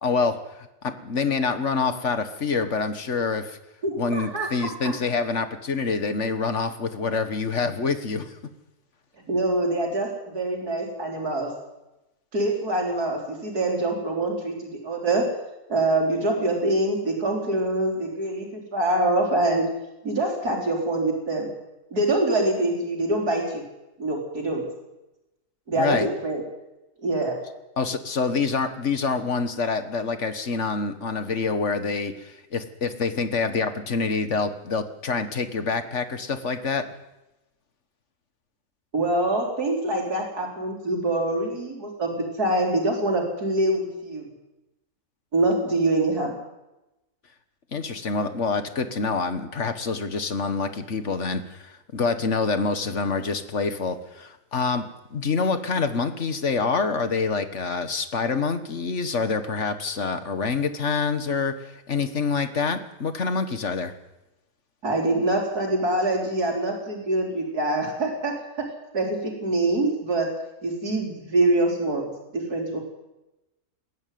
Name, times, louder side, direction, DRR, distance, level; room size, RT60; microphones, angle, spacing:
voice 1, 0.0-3.6 4.0-8.4 25.8-26.1 27.8-36.8 47.7-63.9, left 4 dB, 50° left, 9 dB, 1.8 m, -26 dB
voice 2, 3.8-4.5 4.8-4.9 9.3-11.5 12.3-15.3 15.7-19.7 20.0-21.5 21.9-23.6 24.0-24.6 25.7-26.4 27.0-27.4 38.9-44.2 45.3-46.3 64.8-68.6 68.9-70.3 70.6-72.8, right 2 dB, 85° right, 0 dB, 5.0 m, -25 dB
21.0 x 13.0 x 9.5 m, 0.96 s
omnidirectional pair, 1.6 m